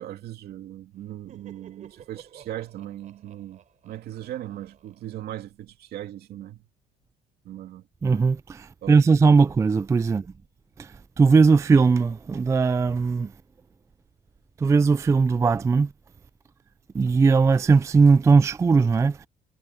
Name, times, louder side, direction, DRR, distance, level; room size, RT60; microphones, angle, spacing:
voice 1, 0.0-6.7 7.4-8.3 8.8-9.2, right 13 dB, 70° right, 2.6 m, -39 dB
Laughter, 1.0-5.7, right 8 dB, 50° right, 3.4 m, -52 dB
voice 2, 8.0-8.6 8.9-10.2 10.8-10.9 11.2-13.3 14.6-15.9 16.9-19.3, right 4 dB, 15° right, 0.3 m, -19 dB
cardioid pair, 110°, 17 cm